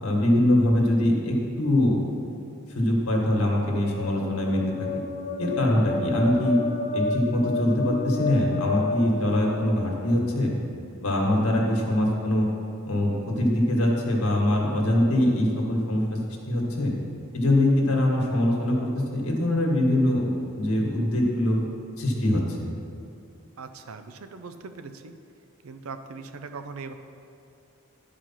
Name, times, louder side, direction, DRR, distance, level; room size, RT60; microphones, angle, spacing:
voice 1, 0.0-2.1 2.7-4.9 5.4-6.6 6.9-10.5 11.0-12.5 12.9-16.0 16.5-16.9 17.3-20.3 20.5-21.6 22.0-22.7, left 1 dB, 80° left, -1 dB, 1.8 m, -23 dB
sound 1, 3.6-10.2, left 3 dB, 40° left, 0.4 m, -31 dB
voice 2, 23.6-25.1 25.6-26.9, right 4 dB, 75° right, 8 dB, 0.6 m, -40 dB
11.5 x 5.0 x 5.8 m, 2.5 s
head